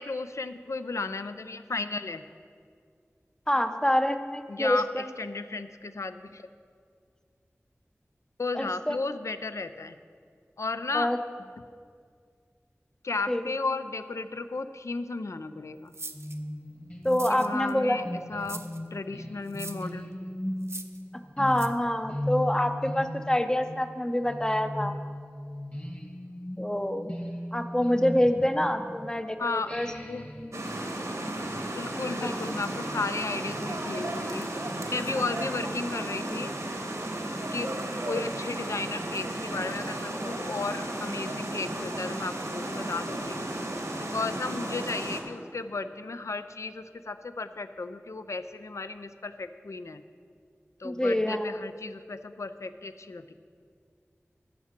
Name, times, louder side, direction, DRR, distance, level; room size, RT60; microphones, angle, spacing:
voice 1, 0.0-2.2 4.5-6.5 8.4-10.0 10.6-11.1 13.0-15.9 17.3-20.1 29.4-29.7 30.0-30.6 31.7-34.5 34.9-36.5 37.1-37.2 37.5-43.4 44.0-50.0 50.8-53.3, left 3 dB, 75° left, 11 dB, 0.4 m, -34 dB
voice 2, 3.5-5.1 8.5-9.0 10.9-11.2 13.3-13.5 17.0-18.3 21.4-25.0 26.6-27.1 27.5-29.9 32.2-32.4 50.8-51.5, left 1 dB, 15° left, 8 dB, 0.6 m, -26 dB
sound 1, 15.9-16.4 17.1-17.7 18.4-18.8 19.5-19.9 20.6-21.0 21.5-21.7, right 3 dB, 60° right, 0.5 m, -40 dB
sound 2, 16.1-29.2 29.7-35.6, left 1 dB, 30° left, 1.6 m, -38 dB
sound 3, 30.5-45.2, right 1 dB, 80° right, 1.1 m, -34 dB
14.0 x 5.9 x 4.4 m, 2.2 s
wide cardioid pair, 55°, 5 cm